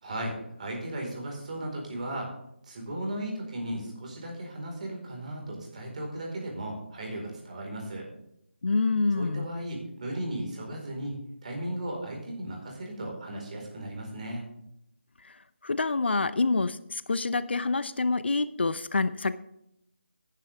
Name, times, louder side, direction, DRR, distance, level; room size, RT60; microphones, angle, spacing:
voice 1, 0.0-2.3 2.6-8.1 9.1-14.4, right 1 dB, 35° right, 0 dB, 4.6 m, -36 dB
voice 2, 8.6-9.5 15.6-19.4, left 3 dB, 60° left, 15 dB, 0.7 m, -27 dB
14.5 x 10.5 x 3.5 m, 0.78 s
figure-of-eight pair, 165°, 7 cm